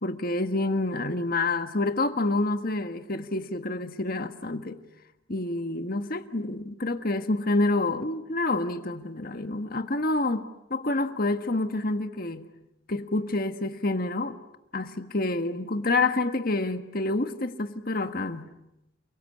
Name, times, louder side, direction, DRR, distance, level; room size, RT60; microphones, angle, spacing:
voice 1, 0.0-4.8 5.3-12.5 12.9-14.4 14.7-18.5, left 2 dB, 45° left, 1.6 m, -28 dB
30.0 x 22.5 x 8.6 m
head